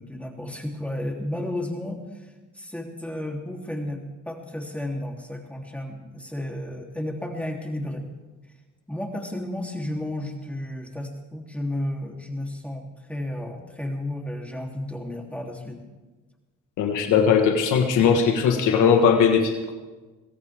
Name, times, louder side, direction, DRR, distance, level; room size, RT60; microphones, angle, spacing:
voice 1, 0.0-2.3 2.5-8.0 8.9-15.8, left 1 dB, 5° left, 0 dB, 3.2 m, -32 dB
voice 2, 16.8-19.7, left 6 dB, 85° left, 4 dB, 1.6 m, -19 dB
23.5 x 16.5 x 3.6 m, 1.2 s
cardioid pair, 90°, 30 cm